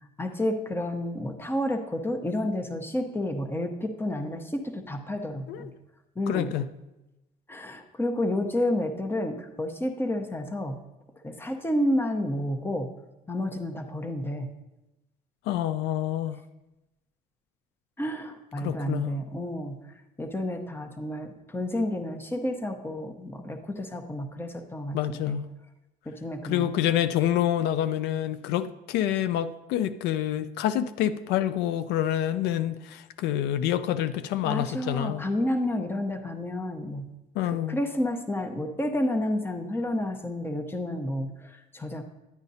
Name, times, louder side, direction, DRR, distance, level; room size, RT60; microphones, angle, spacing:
voice 1, 0.2-5.7 6.2-6.5 7.5-10.8 11.2-12.9 13.3-14.5 18.0-25.4 26.1-26.7 34.4-37.1 37.7-42.0, left 1 dB, 15° left, 5 dB, 0.9 m, -30 dB
voice 2, 6.3-6.7 15.5-16.4 18.6-19.1 24.9-25.4 26.4-35.2 37.4-37.8, left 11 dB, 85° left, 12 dB, 0.4 m, -27 dB
10.5 x 8.8 x 2.7 m, 1.0 s
cardioid pair, 110°, 17 cm